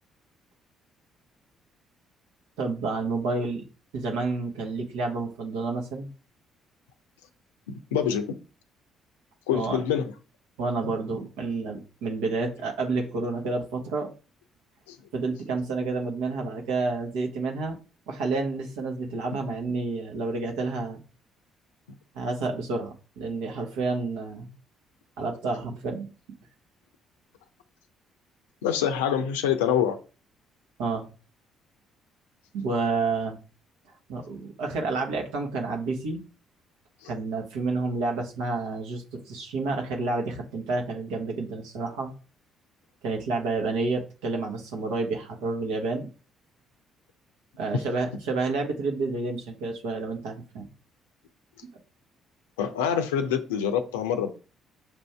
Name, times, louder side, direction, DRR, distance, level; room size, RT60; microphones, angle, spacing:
voice 1, 2.6-3.6 3.9-6.1 9.5-9.8 10.6-14.1 15.1-17.8 18.1-21.0 22.1-24.5 25.2-26.1 30.8-31.1 32.5-33.4 34.1-36.2 37.0-42.1 43.0-46.1 47.6-50.7, right 3 dB, 75° right, 2 dB, 1.0 m, -29 dB
voice 2, 7.7-8.4 9.5-10.1 10.8-10.9 14.9-15.0 28.6-30.0 37.0-37.1 52.6-54.3, left 8 dB, 80° left, 9 dB, 0.5 m, -26 dB
6.0 x 2.7 x 3.3 m, 0.35 s
hypercardioid pair, 50°, 0 cm